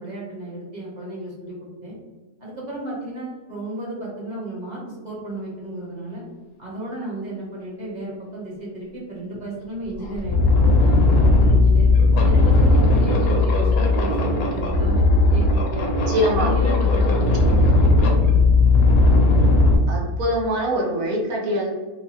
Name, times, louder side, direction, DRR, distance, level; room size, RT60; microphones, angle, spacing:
voice 1, 0.0-2.0 2.4-6.2 6.6-11.9 12.2-15.9 16.3-17.7 17.9-18.2, right 1 dB, 30° right, -5 dB, 1.2 m, -33 dB
sound 1, 9.3-9.4 9.9-19.8, left 2 dB, 70° left, 1.1 m, -17 dB
voice 2, 16.1-16.6 19.9-21.7, equal, 70° right, -3 dB, 1.4 m, -23 dB
3.1 x 2.3 x 4.2 m, 1.3 s
omnidirectional pair, 1.6 m